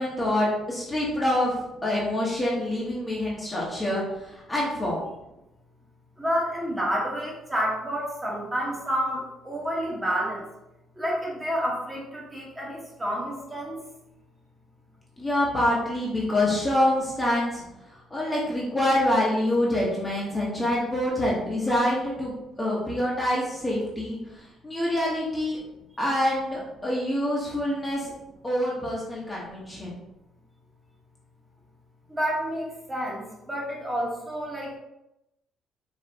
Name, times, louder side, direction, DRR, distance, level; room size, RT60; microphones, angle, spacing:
voice 1, 0.0-1.5 1.8-5.0 15.2-17.6 17.9-25.6 26.0-28.1 28.4-30.0, left 1 dB, 15° left, -5 dB, 1.2 m, -26 dB
voice 2, 6.2-10.4 11.0-13.8 32.1-34.8, equal, 15° right, -4 dB, 1.4 m, -29 dB
5.4 x 3.3 x 2.9 m, 0.90 s
cardioid pair, 120°, 0 cm